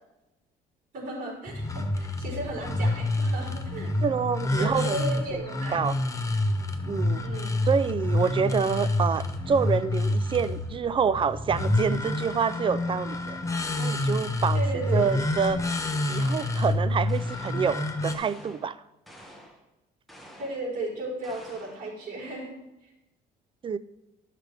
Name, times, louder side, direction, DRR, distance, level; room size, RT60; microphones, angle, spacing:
voice 1, 0.9-3.9 4.6-5.8 7.2-7.7 14.5-15.2 20.4-22.5, right 1 dB, 55° right, -3 dB, 3.7 m, -35 dB
sound 1, 1.5-18.1, left 2 dB, 20° left, 0.9 m, -28 dB
voice 2, 4.0-5.0 5.3-5.4 5.7-6.0 6.9-7.3 7.7-13.4 13.8-14.6 14.9-15.6 16.1-18.8 23.6-23.8, right 6 dB, 30° right, 16 dB, 0.4 m, -27 dB
sound 2, 16.1-16.7 17.1-17.7 18.1-18.7 19.1-19.6 20.1-20.7 21.2-21.9, equal, ahead, 1.5 m, -49 dB
12.5 x 6.6 x 3.3 m, 0.96 s
cardioid pair, 110°, 17 cm